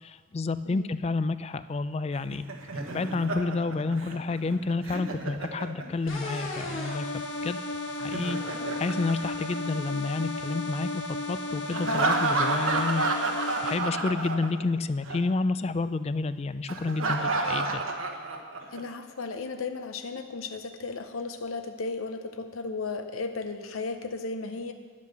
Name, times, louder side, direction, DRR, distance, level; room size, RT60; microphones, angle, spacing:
voice 1, 0.0-2.4 2.7-7.6 8.0-8.4 8.7-13.0 13.6-17.8, left 3 dB, 30° left, 14 dB, 0.3 m, -30 dB
Laughter, 2.1-6.2 7.9-10.0 11.7-14.8 15.0-15.2 16.7-18.8, right 3 dB, 85° right, 1.2 m, -30 dB
sound 1, 6.1-13.7, left 2 dB, 70° left, 1.9 m, -34 dB
voice 2, 18.7-24.7, left 4 dB, 90° left, 7 dB, 0.7 m, -35 dB
10.5 x 8.4 x 6.7 m, 1.5 s
head